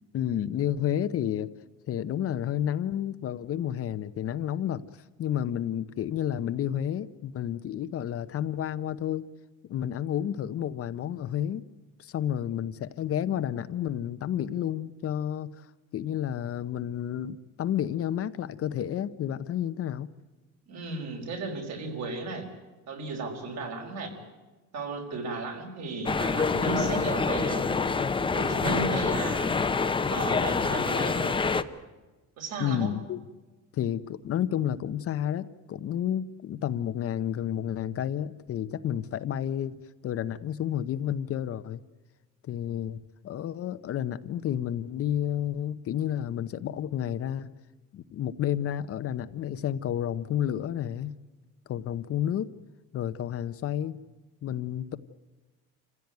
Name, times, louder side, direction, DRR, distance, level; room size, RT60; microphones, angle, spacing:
voice 1, 0.1-1.5 1.9-4.8 5.2-9.3 9.6-11.6 12.0-15.7 15.9-20.1 32.6-33.2 33.7-41.8 42.4-43.0 43.2-47.5 47.9-51.2 51.7-52.5 52.9-54.0 54.4-55.0, left 10 dB, 45° left, 12 dB, 0.8 m, -30 dB
voice 2, 20.7-22.5 22.9-24.1 24.7-27.7 28.3-29.6 30.1-31.4 32.4-32.9, right 3 dB, 55° right, 3 dB, 5.1 m, -34 dB
sound 1, 26.0-31.6, left 4 dB, 15° left, 0.8 m, -26 dB
27.0 x 15.5 x 9.3 m, 1.2 s
cardioid pair, 145°, 32 cm